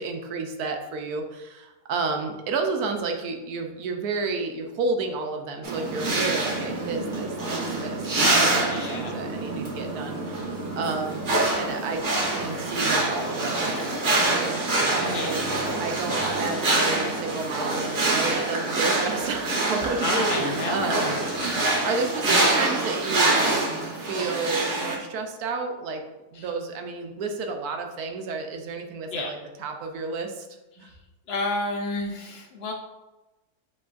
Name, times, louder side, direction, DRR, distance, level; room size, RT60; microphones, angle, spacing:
voice 1, 0.0-11.2 11.6-12.0 12.3-15.4 15.8-21.2 21.8-23.6 23.9-26.0 26.3-30.5 30.8-30.9, right 4 dB, 80° right, 4 dB, 1.1 m, -31 dB
sound 1, 5.6-25.0, right 2 dB, 50° right, 1.2 m, -25 dB
voice 2, 8.7-9.2 15.0-15.6 20.0-21.1 26.3-26.4 29.1-29.3 31.3-32.7, left 2 dB, 90° left, 2 dB, 0.5 m, -30 dB
6.9 x 3.1 x 2.4 m, 1.1 s
omnidirectional pair, 1.6 m